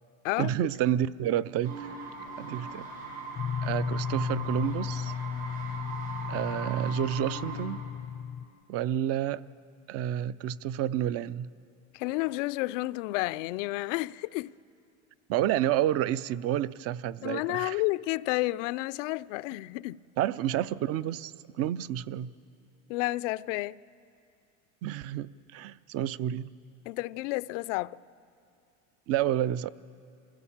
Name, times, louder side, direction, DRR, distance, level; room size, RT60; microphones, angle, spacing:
voice 1, 0.4-2.0 2.4-2.9 3.6-5.1 6.3-7.8 8.7-9.4 9.9-11.5 15.3-17.8 20.2-22.3 24.8-26.5 29.1-29.7, right 11 dB, 40° right, 0.5 m, -30 dB
sound 1, 1.6-7.6, right 3 dB, 80° right, 6.1 m, -40 dB
sound 2, 3.4-8.4, left 8 dB, 20° left, 0.4 m, -35 dB
voice 2, 11.9-14.5 17.2-20.0 22.9-23.8 26.9-28.0, left 20 dB, 75° left, 0.5 m, -31 dB
26.0 x 15.5 x 7.3 m
supercardioid pair, 120°, 38 cm